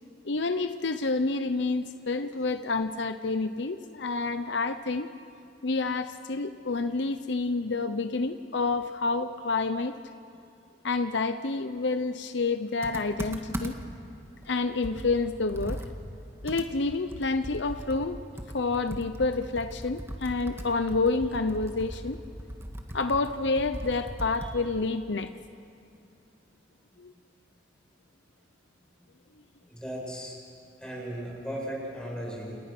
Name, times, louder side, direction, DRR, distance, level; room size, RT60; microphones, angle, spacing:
voice 1, 0.2-5.1 5.6-10.0 10.8-13.7 14.4-15.8 16.4-18.2 18.5-22.2 22.9-25.3 27.0-27.1, left 3 dB, 65° left, 10 dB, 0.8 m, -28 dB
Computer keyboard, 12.8-14.0 14.4-14.5 14.8-24.7, equal, 15° right, 1.8 m, -39 dB
voice 2, 29.7-30.4 30.8-32.6, equal, 5° left, -3 dB, 7.6 m, -36 dB
29.5 x 29.0 x 6.1 m, 2.6 s
head